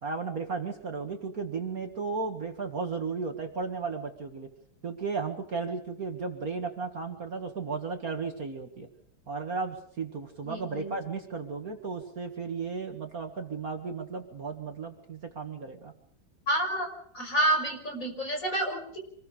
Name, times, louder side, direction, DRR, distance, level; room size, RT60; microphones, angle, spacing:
voice 1, 0.0-4.5 4.8-8.9 9.3-15.9, right 4 dB, 45° right, 5 dB, 2.3 m, -34 dB
voice 2, 10.5-10.9 16.5-16.9 17.1-19.0, right 1 dB, 40° left, 4 dB, 6.0 m, -29 dB
26.5 x 21.5 x 5.1 m, 0.67 s
omnidirectional pair, 2.2 m